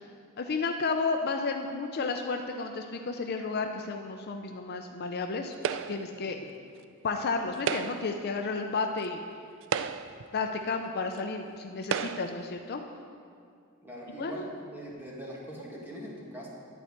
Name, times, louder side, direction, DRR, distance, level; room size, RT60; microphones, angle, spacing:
voice 1, 0.4-6.4 7.0-9.2 10.3-12.8 14.2-14.5, left 4 dB, 45° left, 4 dB, 0.5 m, -32 dB
sound 1, 5.6-6.2 7.5-8.2 9.0-9.1 9.6-10.3 11.2-11.3 11.8-12.4, right 7 dB, 55° right, 0.3 m, -32 dB
voice 2, 13.8-16.5, equal, 10° right, -4 dB, 1.6 m, -41 dB
11.0 x 4.5 x 8.1 m, 2.3 s
head